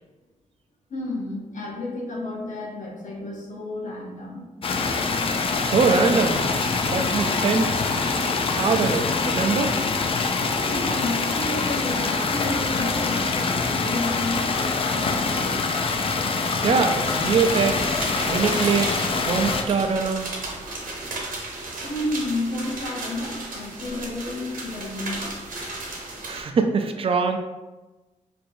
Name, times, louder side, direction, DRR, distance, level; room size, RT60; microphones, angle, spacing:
voice 1, 0.9-4.5 10.6-15.6 21.8-25.3, left 2 dB, 65° left, -2 dB, 0.9 m, -31 dB
sound 1, 4.6-19.6, left 4 dB, 45° left, 0.4 m, -24 dB
voice 2, 5.6-6.5 6.8-7.7 8.6-9.7 16.6-18.9 19.3-20.3 26.2-27.4, right 5 dB, 45° right, 6 dB, 0.4 m, -23 dB
sound 2, 17.0-26.4, right 2 dB, 85° right, 0.8 m, -34 dB
4.5 x 2.6 x 2.6 m, 1.1 s
wide cardioid pair, 100°, 14 cm